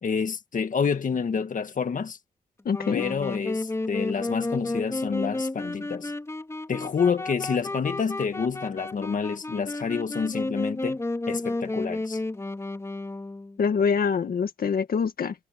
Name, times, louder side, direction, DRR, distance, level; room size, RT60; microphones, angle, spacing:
voice 1, 0.0-2.2 2.9-6.1 6.7-11.0 11.3-12.2, left 6 dB, 65° left, 1.7 m, -28 dB
voice 2, 2.7-3.0 13.6-15.3, left 6 dB, 85° left, 2.0 m, -25 dB
Wind instrument woodwind instrument, 2.7-13.6, left 2 dB, 20° left, 4.7 m, -32 dB
wide cardioid pair, 160°, 15 cm